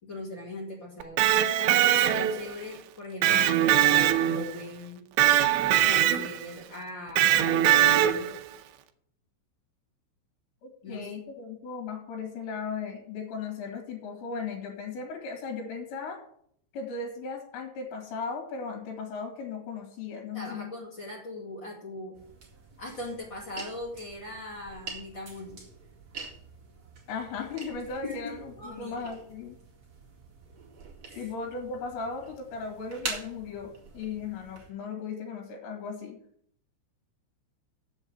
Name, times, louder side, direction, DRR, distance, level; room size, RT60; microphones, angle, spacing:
voice 1, 0.0-5.1 5.8-8.3 10.8-11.1 20.3-22.2 22.8-25.6 28.0-29.0 31.1-31.3, left 1 dB, 35° left, -4 dB, 2.1 m, -40 dB
Electric guitar, 1.0-2.5 3.2-4.6 5.2-6.5 7.2-8.4, right 12 dB, 80° right, 2.8 m, -22 dB
voice 2, 10.6-16.2 16.7-20.7 27.1-29.6 31.2-36.2, left 5 dB, 65° left, 1 dB, 4.2 m, -37 dB
sound 1, 22.1-34.7, right 3 dB, 45° right, 1.7 m, -45 dB
7.8 x 7.2 x 7.7 m, 0.66 s
omnidirectional pair, 5.6 m